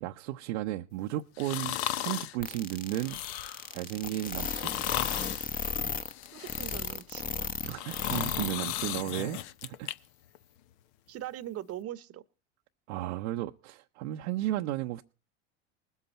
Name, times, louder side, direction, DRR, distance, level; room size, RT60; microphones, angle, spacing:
voice 1, 0.0-3.2 3.7-4.8 7.6-9.9 12.9-15.0, right 15 dB, 70° right, 0.8 m, -34 dB
sound 1, 1.4-2.4 2.9-3.7 4.4-5.5 6.0-7.0 7.5-9.9 10.3-10.4, left 13 dB, 65° left, 0.8 m, -35 dB
sound 2, 2.4-8.5 8.8-8.9 9.4-9.5, left 6 dB, 25° left, 1.0 m, -34 dB
voice 2, 6.3-7.2 11.1-12.2, right 12 dB, 40° right, 1.0 m, -40 dB
20.5 x 8.2 x 4.3 m
hypercardioid pair, 90°, 36 cm